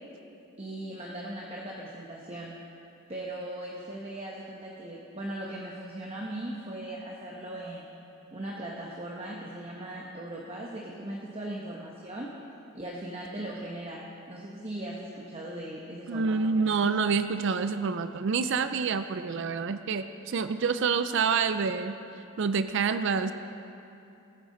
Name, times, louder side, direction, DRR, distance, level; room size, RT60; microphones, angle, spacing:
voice 1, 0.6-2.5 3.1-7.9 8.3-12.3 12.7-16.8, right 1 dB, 25° right, -3 dB, 1.0 m, -39 dB
voice 2, 16.1-21.9 22.4-23.3, right 5 dB, 55° right, 11 dB, 0.4 m, -27 dB
19.5 x 9.2 x 3.9 m, 2.8 s
head